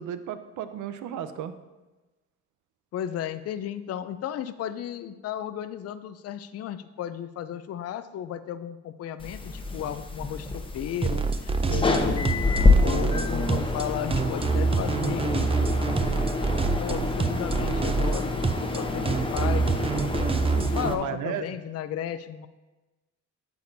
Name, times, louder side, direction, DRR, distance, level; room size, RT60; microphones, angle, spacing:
voice 1, 0.0-1.6 12.3-12.5 20.8-21.4, right 9 dB, 80° right, 11 dB, 0.6 m, -34 dB
voice 2, 2.9-12.5 12.8-15.5 16.5-19.8 20.5-22.5, left 10 dB, 55° left, 12 dB, 0.5 m, -34 dB
sound 1, 9.2-20.9, left 3 dB, 15° left, 0.8 m, -27 dB
sound 2, 11.0-20.9, right 4 dB, 20° right, 0.4 m, -26 dB
9.2 x 7.0 x 2.7 m, 1.1 s
cardioid pair, 90°, 30 cm